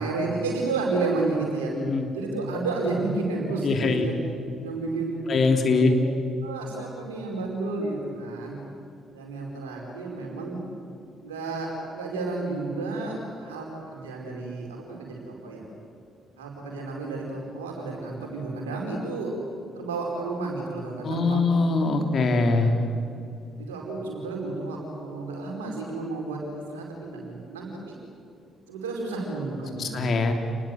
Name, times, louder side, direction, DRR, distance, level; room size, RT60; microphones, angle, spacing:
voice 1, 0.0-1.7 2.1-4.1 4.6-5.2 5.6-5.9 6.4-8.6 9.1-10.6 11.2-15.6 16.4-19.3 19.7-21.4 22.6-22.7 23.5-28.0 28.7-30.3, right 3 dB, 80° right, -1 dB, 4.9 m, -31 dB
voice 2, 3.6-4.0 5.3-5.9 21.0-22.7 29.7-30.3, left 3 dB, 50° left, 4 dB, 2.9 m, -22 dB
28.5 x 20.0 x 8.0 m, 2.5 s
figure-of-eight pair, 45°, 0 cm